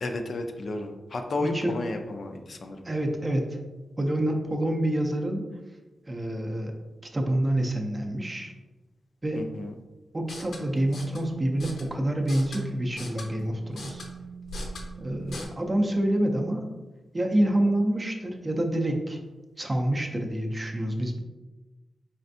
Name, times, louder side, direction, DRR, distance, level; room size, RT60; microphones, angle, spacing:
voice 1, 0.0-2.9 9.4-9.7, left 2 dB, 50° left, 5 dB, 0.3 m, -32 dB
voice 2, 1.4-1.7 2.8-3.6 4.0-5.4 6.1-6.7 7.1-8.5 9.2-9.4 10.1-14.0 15.0-16.7 17.1-19.2 19.6-21.2, right 1 dB, 20° right, 3 dB, 0.4 m, -27 dB
sound 1, 10.2-15.4, equal, 80° left, 0.7 m, -41 dB
4.2 x 3.3 x 2.6 m, 1.2 s
wide cardioid pair, 160°, 0 cm